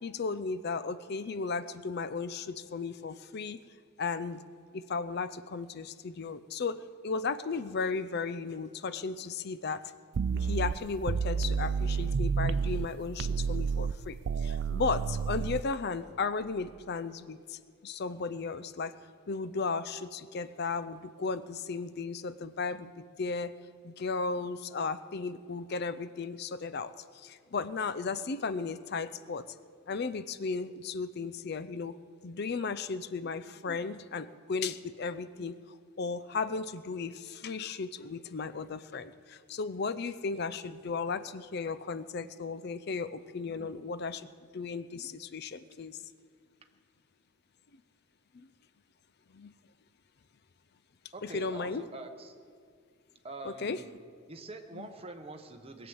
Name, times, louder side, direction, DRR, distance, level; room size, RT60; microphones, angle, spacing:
voice 1, 0.0-3.6 4.0-4.4 4.7-9.8 10.3-19.0 19.3-23.5 23.8-29.5 29.9-32.0 32.2-35.6 36.0-46.0 48.3-48.5 49.3-49.5 51.2-51.8 53.4-53.8 54.8-54.9, left 4 dB, 45° left, 14 dB, 0.4 m, -35 dB
sound 1, 10.1-12.9 13.2-15.6, right 6 dB, 55° right, 0.3 m, -30 dB
voice 2, 51.1-52.3 53.2-53.9 54.3-55.9, right 2 dB, 25° right, 5 dB, 0.9 m, -44 dB
20.5 x 7.8 x 7.8 m, 2.1 s
head